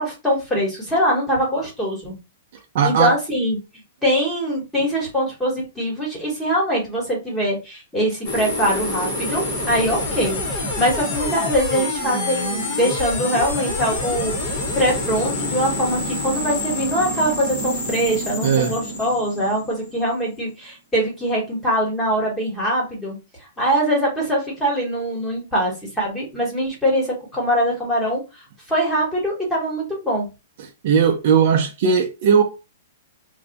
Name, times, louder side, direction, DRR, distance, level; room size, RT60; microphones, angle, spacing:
voice 1, 0.0-2.2 2.8-3.6 4.0-14.3 14.7-23.2 23.6-28.2 28.7-30.3, equal, 5° left, 1.1 m, -22 dB
voice 2, 2.7-3.2 18.4-18.8 30.8-32.4, right 6 dB, 45° right, 0.5 m, -17 dB
sound 1, 8.2-20.2, left 1 dB, 30° left, 0.9 m, -27 dB
2.6 x 2.2 x 3.9 m
hypercardioid pair, 170°, 0 cm